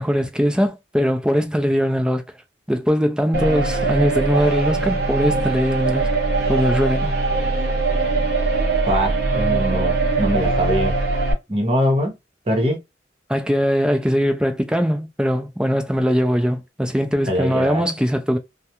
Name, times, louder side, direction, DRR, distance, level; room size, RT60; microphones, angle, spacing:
voice 1, 0.0-2.2 2.7-6.1 6.5-7.2 13.3-18.4, equal, 5° right, 0.4 m, -21 dB
sound 1, 3.3-11.3, right 3 dB, 65° right, 0.7 m, -21 dB
voice 2, 8.8-11.0 11.5-12.2 12.5-12.8 17.3-17.8, equal, 35° right, 0.9 m, -22 dB
2.4 x 2.1 x 2.8 m
head